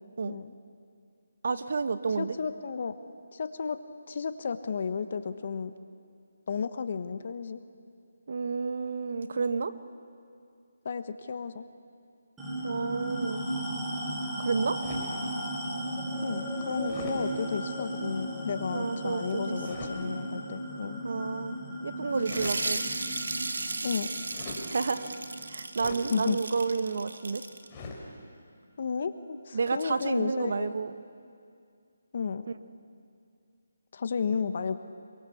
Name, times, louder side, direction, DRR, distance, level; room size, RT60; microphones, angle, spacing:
voice 1, 1.4-2.4 8.3-9.7 12.6-13.5 14.4-14.8 18.7-19.9 21.0-21.6 21.8-22.8 24.7-25.1 25.5-27.4 29.5-30.9 32.5-32.6, right 4 dB, 60° right, 10 dB, 1.4 m, -30 dB
voice 2, 2.2-3.8 4.1-5.7 6.5-7.6 10.8-11.6 16.2-21.0 23.8-24.1 26.1-26.4 28.8-30.7 32.1-32.4 33.9-34.8, left 6 dB, 50° left, 10 dB, 1.2 m, -33 dB
sound 1, 12.4-27.2, right 1 dB, 5° right, 4.8 m, -36 dB
sound 2, 14.8-15.2 16.8-17.2 19.6-20.0 22.1-22.6 24.3-24.7 25.7-26.1 27.7-28.0, left 3 dB, 20° left, 4.6 m, -41 dB
sound 3, 22.2-27.7, right 3 dB, 80° right, 2.1 m, -35 dB
26.5 x 23.0 x 7.2 m, 2.3 s
figure-of-eight pair, 160°, 0 cm